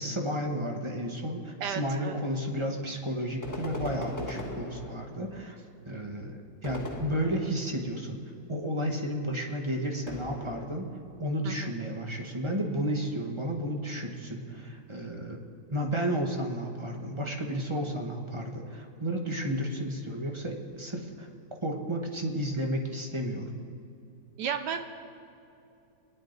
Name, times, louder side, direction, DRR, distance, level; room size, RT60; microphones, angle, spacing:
voice 1, 0.0-5.6 5.8-8.2 8.5-10.9 11.2-15.4 15.7-21.3 21.6-23.5, equal, 20° right, 1 dB, 0.9 m, -32 dB
voice 2, 1.6-2.2 4.3-4.6 11.4-11.7 24.4-24.9, right 7 dB, 70° right, 8 dB, 1.2 m, -34 dB
sound 1, 3.4-5.4 6.6-7.8 10.1-11.0, left 1 dB, 10° left, 0.9 m, -39 dB
23.0 x 10.0 x 4.0 m, 2.7 s
omnidirectional pair, 2.1 m